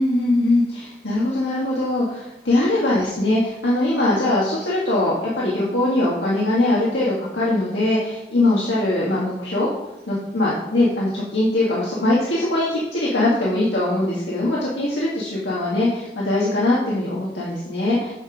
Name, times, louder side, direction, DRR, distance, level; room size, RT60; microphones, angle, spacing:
voice 1, 0.0-9.7 10.1-18.1, left 1 dB, 85° left, -6 dB, 2.0 m, -21 dB
8.7 x 6.1 x 5.1 m, 0.95 s
head